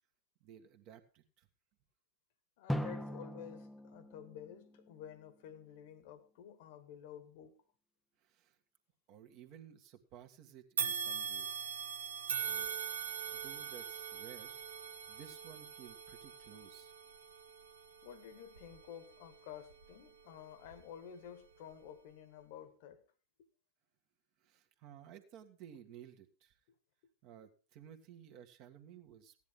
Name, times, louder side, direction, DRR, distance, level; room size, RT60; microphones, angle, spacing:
voice 1, 0.4-1.5 8.2-8.6 9.1-11.6 12.4-12.7 13.3-14.6 15.1-16.9 24.4-26.6 27.2-29.4, right 9 dB, 40° right, 1.8 m, -55 dB
voice 2, 2.6-7.6 18.0-23.0 23.4-23.5, left 9 dB, 50° left, 1.6 m, -51 dB
Drum, 2.7-5.4, equal, ahead, 0.9 m, -41 dB
sound 1, 10.8-20.1 20.6-20.8 21.7-21.8, right 7 dB, 70° right, 1.3 m, -42 dB
16.5 x 10.5 x 3.7 m
figure-of-eight pair, 90°, 0 cm